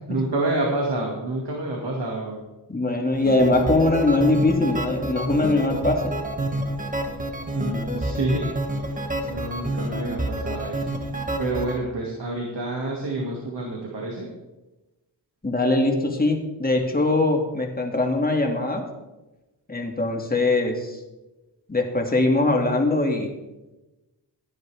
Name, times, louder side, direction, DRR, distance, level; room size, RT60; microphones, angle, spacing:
voice 1, 0.1-2.4 7.5-8.5 8.9-9.0 9.3-10.8 11.4-14.3, right 2 dB, 75° right, -2 dB, 2.4 m, -28 dB
voice 2, 2.7-6.2 15.4-18.8 19.7-21.0 21.7-23.3, left 2 dB, 20° left, 2 dB, 2.2 m, -22 dB
sound 1, 3.1-11.8, right 1 dB, 20° right, 1.5 m, -29 dB
16.5 x 11.0 x 3.5 m, 1.0 s
wide cardioid pair, 80°, 42 cm